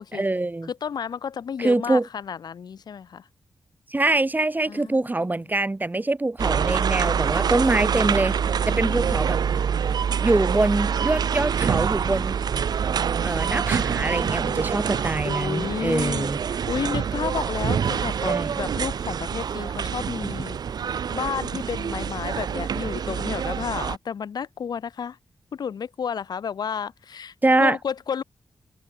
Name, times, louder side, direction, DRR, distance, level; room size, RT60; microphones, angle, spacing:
voice 1, 0.1-0.7 1.6-2.0 3.9-8.4 8.7-9.4 10.2-12.4 13.2-16.4 18.2-18.5 27.4-27.8, right 2 dB, 25° right, 2.4 m, -24 dB
voice 2, 0.6-3.3 4.7-5.1 8.7-9.3 13.2-20.6 21.1-25.2 25.5-27.3 27.6-28.2, left 7 dB, 80° left, 4.5 m, -32 dB
sound 1, 6.4-24.0, right 7 dB, 80° right, 1.4 m, -26 dB
open air
cardioid pair, 55°, 7 cm